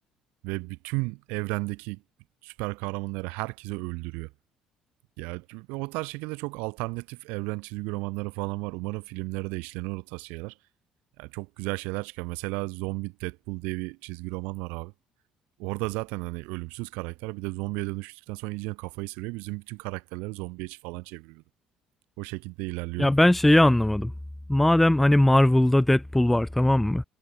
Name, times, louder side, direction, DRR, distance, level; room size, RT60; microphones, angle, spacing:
voice 1, 0.4-2.0 2.4-4.3 5.2-10.6 11.2-14.9 15.6-21.4 22.2-23.1, right 27 dB, 85° right, 3.2 m, -34 dB
voice 2, 23.0-24.1 24.5-27.0, left 1 dB, 5° left, 0.6 m, -19 dB
supercardioid pair, 80°, 3 cm